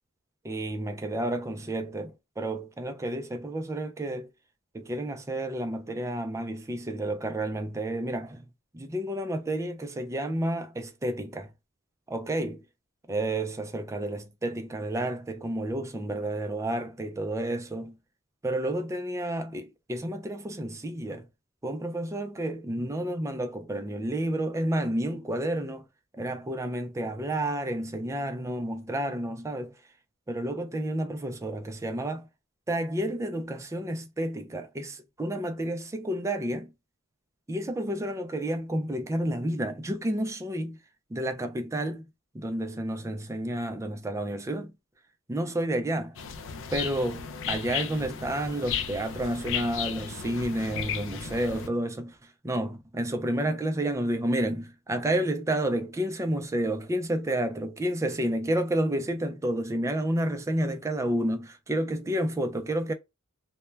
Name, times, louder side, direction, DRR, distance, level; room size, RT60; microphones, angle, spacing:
voice 1, 0.4-4.3 4.7-8.5 8.7-11.5 12.1-12.6 13.1-18.0 18.4-21.3 21.6-25.9 26.1-29.8 30.3-32.3 32.7-36.7 37.5-40.8 41.1-42.1 42.3-44.7 45.3-46.2 46.7-62.9, right 1 dB, 15° right, 0.4 m, -30 dB
sound 1, 46.2-51.7, left 7 dB, 65° left, 0.4 m, -35 dB
2.2 x 2.2 x 3.1 m
head